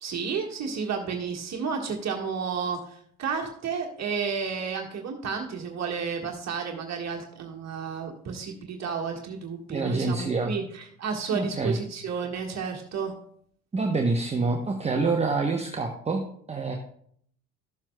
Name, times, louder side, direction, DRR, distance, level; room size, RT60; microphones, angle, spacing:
voice 1, 0.0-13.1, right 6 dB, 40° right, 0 dB, 1.5 m, -32 dB
voice 2, 9.7-10.5 11.3-11.8 13.7-16.2 16.5-16.8, right 3 dB, 15° right, 3 dB, 0.9 m, -26 dB
13.0 x 7.3 x 2.2 m, 0.63 s
hypercardioid pair, 60°, 41 cm